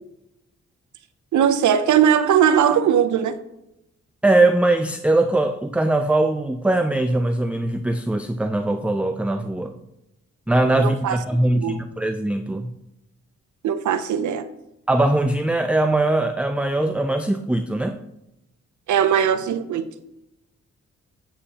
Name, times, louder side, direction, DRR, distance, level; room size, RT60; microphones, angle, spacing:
voice 1, 1.3-3.3 10.8-11.2 11.5-11.7 13.6-14.4 18.9-19.9, right 8 dB, 80° right, 0.6 m, -19 dB
voice 2, 4.2-9.7 10.5-12.7 14.9-18.0, right 2 dB, 5° right, 0.4 m, -21 dB
8.2 x 7.3 x 2.8 m
cardioid pair, 70°, 29 cm